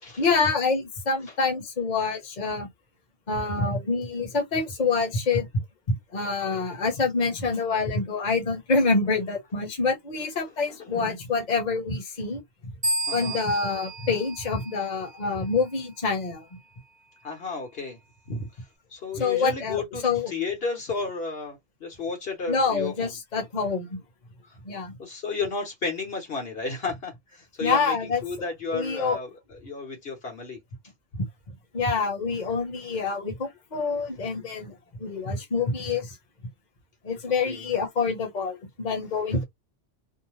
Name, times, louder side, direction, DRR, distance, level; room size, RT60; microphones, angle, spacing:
voice 1, 0.2-2.7 3.3-5.5 5.9-12.4 13.1-16.4 19.1-20.3 22.5-24.0 24.6-24.9 27.6-28.2 28.7-29.2 31.2-31.3 31.7-36.2 37.0-39.4, left 4 dB, 40° left, 1.1 m, -26 dB
voice 2, 10.7-11.0 13.1-13.4 17.2-18.0 18.3-18.5 18.9-23.1 24.4-24.6 25.0-30.6 37.4-37.7, left 4 dB, 60° left, 1.2 m, -33 dB
sound 1, 12.8-15.3, right 1 dB, 25° right, 0.8 m, -32 dB
2.7 x 2.1 x 3.0 m
omnidirectional pair, 1.1 m